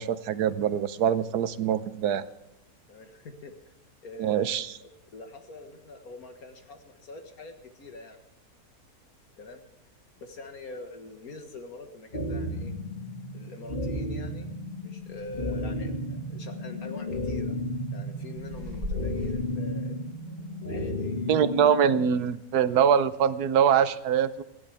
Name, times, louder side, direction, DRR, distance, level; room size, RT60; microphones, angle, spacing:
voice 1, 0.0-2.3 4.2-4.7 21.3-24.4, right 8 dB, 85° right, 13 dB, 1.3 m, -24 dB
voice 2, 2.9-3.5 4.0-4.5 4.8-8.2 9.4-9.6 10.2-12.7 13.3-14.5 14.8-17.6 17.9-21.5, left 2 dB, 65° left, 5 dB, 2.0 m, -44 dB
sound 1, 12.1-22.1, left 1 dB, 35° left, 2.3 m, -33 dB
sound 2, 15.3-15.8 16.2-16.3 16.9-17.3 17.9-19.5, left 1 dB, 60° right, 6.4 m, -37 dB
28.0 x 11.0 x 3.4 m, 0.90 s
omnidirectional pair, 1.6 m